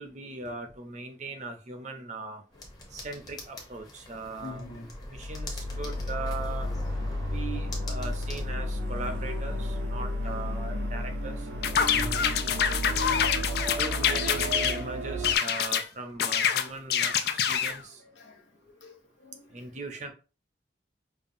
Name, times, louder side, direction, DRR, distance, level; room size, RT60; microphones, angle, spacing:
voice 1, 0.0-2.4 2.9-4.7 5.0-6.7 7.2-11.5 13.7-17.1 17.5-18.0 19.5-20.1, right 3 dB, 40° right, 0.6 m, -39 dB
sound 1, 2.5-8.5, left 1 dB, 20° left, 0.8 m, -43 dB
voice 2, 4.4-5.0 6.6-6.8 7.1-7.4 10.2-10.4 11.9-13.2 16.2-16.6 18.0-18.4 18.8-19.6, left 2 dB, 75° left, 0.9 m, -45 dB
sound 2, 5.1-15.4, equal, 80° right, 0.7 m, -32 dB
sound 3, 11.6-14.8 15.2-15.9 16.2-17.8, left 8 dB, 55° left, 0.3 m, -26 dB
5.3 x 2.3 x 2.6 m
head